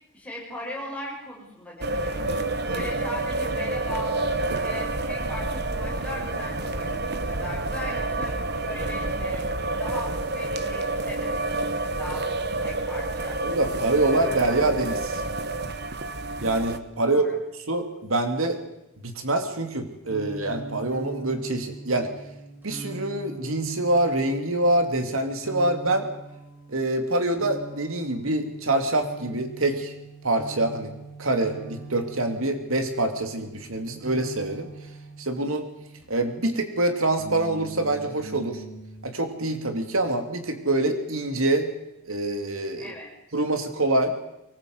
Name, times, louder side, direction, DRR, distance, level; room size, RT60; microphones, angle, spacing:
voice 1, 0.1-9.5 9.8-11.4 12.0-13.4 17.0-17.4 42.8-43.1, left 1 dB, 5° left, -3 dB, 6.4 m, -38 dB
sound 1, 1.8-16.8, right 2 dB, 50° right, 1.2 m, -29 dB
voice 2, 13.4-15.2 16.4-17.2 17.7-18.6 19.0-22.1 22.6-26.1 26.7-29.9 30.2-30.9 31.2-34.7 35.2-35.7 36.1-38.6 39.0-41.7 42.1-42.9 43.3-44.1, right 2 dB, 75° right, 6 dB, 2.7 m, -25 dB
sound 2, 20.0-36.3 37.1-39.1, right 3 dB, 10° right, 6.1 m, -42 dB
24.0 x 19.0 x 8.0 m, 0.87 s
head